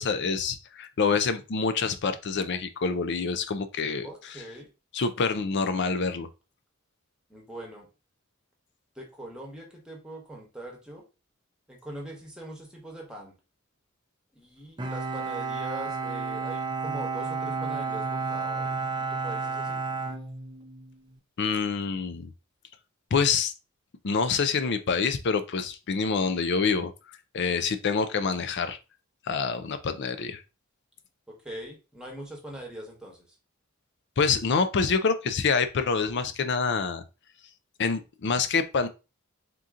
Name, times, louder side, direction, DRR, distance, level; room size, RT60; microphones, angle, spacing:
voice 1, 0.0-4.4 4.9-6.3 21.4-22.3 23.1-23.5 24.0-26.9 27.3-28.8 29.3-30.4 34.2-37.0 37.8-38.9, left 5 dB, 55° left, 10 dB, 0.5 m, -26 dB
voice 2, 4.0-4.7 7.3-7.9 8.9-11.0 11.7-13.4 14.3-19.8 31.3-33.3, right 1 dB, 5° right, 0 dB, 1.2 m, -42 dB
Bowed string instrument, 14.8-20.9, right 4 dB, 20° right, 0.5 m, -31 dB
3.8 x 2.9 x 3.7 m, 0.29 s
head